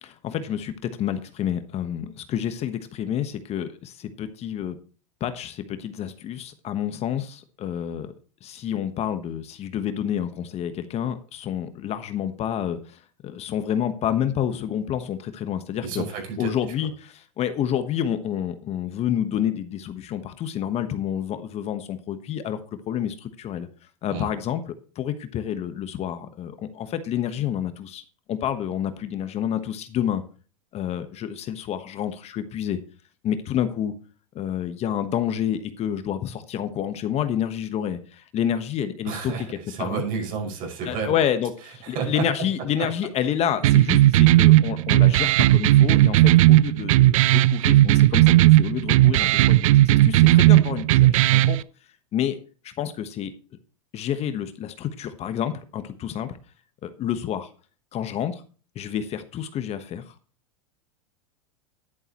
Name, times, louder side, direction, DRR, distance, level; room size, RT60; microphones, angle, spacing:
voice 1, 0.0-4.8 5.2-8.1 8.4-16.0 16.4-22.6 22.9-23.7 24.0-28.0 28.3-30.2 30.7-32.8 33.2-33.9 34.3-39.5 39.8-40.0 40.8-51.6 52.1-52.4 52.6-53.3 53.9-56.4 56.8-57.5 57.9-58.4 58.7-60.1, left 9 dB, 35° left, 10 dB, 1.2 m, -29 dB
voice 2, 15.8-16.5 24.1-24.3 39.0-41.2 41.9-42.2, right 5 dB, 50° right, 1 dB, 5.8 m, -30 dB
sound 1, 43.6-51.6, right 16 dB, 70° right, 0.5 m, -16 dB
11.0 x 11.0 x 3.0 m, 0.38 s
hypercardioid pair, 105°, 18 cm